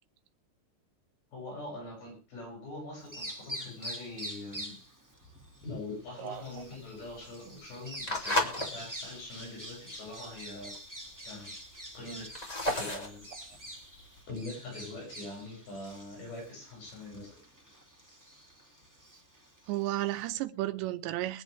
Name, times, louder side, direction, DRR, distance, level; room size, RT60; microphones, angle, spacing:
voice 1, 1.3-4.8 5.6-10.8 11.3-11.6 11.9-12.3 12.7-13.3 14.3-17.4, left 2 dB, 55° left, 8.2 m, -43 dB
Bird vocalization bird call bird song, 3.0-20.4, equal, 10° right, 0.8 m, -46 dB
voice 2, 6.2-6.6 19.7-21.4, right 16 dB, 90° right, 3.1 m, -33 dB
sound 1, 6.3-8.7 9.1-9.5 10.0-10.1 10.2-10.3 10.5-11.1 11.6-14.2, left 1 dB, 15° left, 1.9 m, -33 dB
23.5 x 9.1 x 3.5 m
omnidirectional pair, 5.0 m